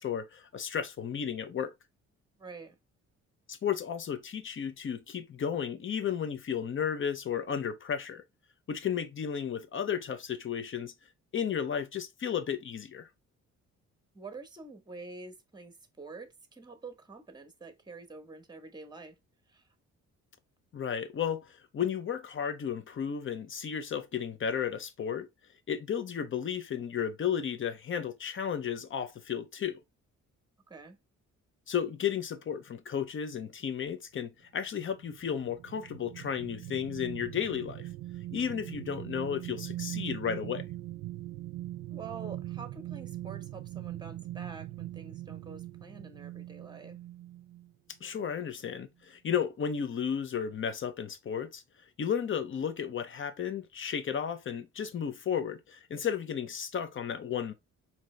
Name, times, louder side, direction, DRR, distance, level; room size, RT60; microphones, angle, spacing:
voice 1, 0.0-1.7 3.5-8.2 8.7-10.9 11.3-13.1 20.7-25.3 25.7-29.8 31.7-37.9 38.3-40.6 48.0-51.6 52.0-57.5, left 8 dB, 40° left, 0.8 m, -33 dB
voice 2, 2.4-2.7 14.1-19.2 19.5-19.7 30.7-31.0 41.9-47.0, right 4 dB, 15° right, 1.0 m, -47 dB
sound 1, 34.8-47.7 48.2-48.3, right 15 dB, 80° right, 0.5 m, -41 dB
4.3 x 2.9 x 3.1 m
cardioid pair, 90°, 30 cm